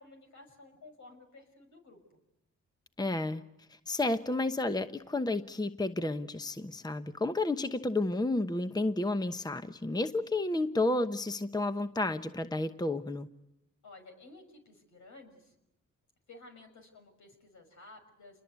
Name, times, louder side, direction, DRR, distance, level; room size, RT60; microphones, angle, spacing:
voice 1, 0.0-2.2 13.8-15.5 16.3-18.4, left 2 dB, 70° left, 4 dB, 6.1 m, -54 dB
voice 2, 3.0-3.4 3.7-13.3, left 2 dB, 15° left, 10 dB, 1.0 m, -31 dB
28.0 x 21.5 x 8.3 m, 0.86 s
cardioid pair, 70°, 30 cm